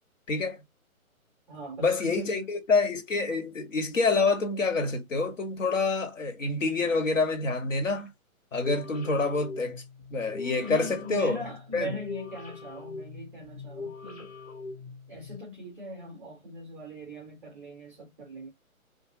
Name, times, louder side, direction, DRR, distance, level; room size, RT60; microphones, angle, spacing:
voice 1, 0.3-0.6 1.8-8.1 8.5-9.8 10.1-11.4 11.7-12.0, left 3 dB, 60° left, 2.1 m, -27 dB
voice 2, 1.5-2.5 10.6-14.3 15.1-18.5, left 1 dB, 5° right, 0.6 m, -40 dB
sound 1, 8.5-15.4, left 4 dB, 25° left, 1.2 m, -42 dB
5.2 x 2.7 x 3.0 m
figure-of-eight pair, 140°, 43 cm